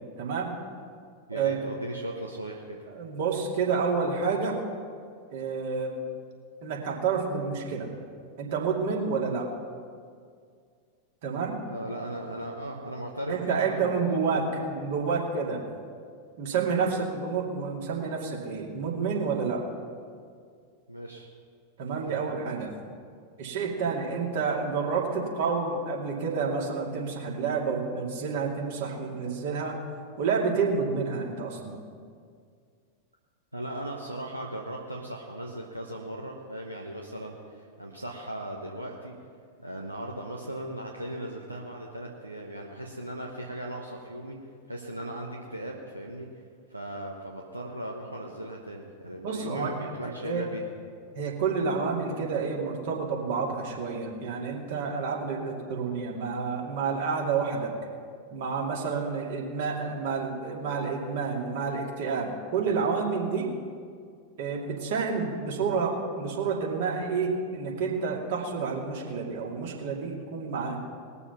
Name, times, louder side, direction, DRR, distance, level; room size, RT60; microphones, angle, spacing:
voice 1, 0.2-0.5 1.3-1.6 2.9-4.6 5.3-6.0 6.6-7.9 8.4-9.5 11.2-11.6 13.3-15.6 16.4-19.6 21.8-22.7 23.4-29.8 30.2-31.8 49.2-50.4 51.1-57.7 58.3-63.5 64.4-70.8, right 5 dB, 55° right, -2 dB, 2.5 m, -29 dB
voice 2, 1.3-2.8 11.7-14.2 14.5-14.6 20.9-21.3 21.9-22.2 33.5-39.1 39.6-44.4 44.7-46.3 46.7-50.7, right 1 dB, 85° right, -1 dB, 1.0 m, -37 dB
20.5 x 7.0 x 5.8 m, 2.1 s
figure-of-eight pair, 90°, 0 cm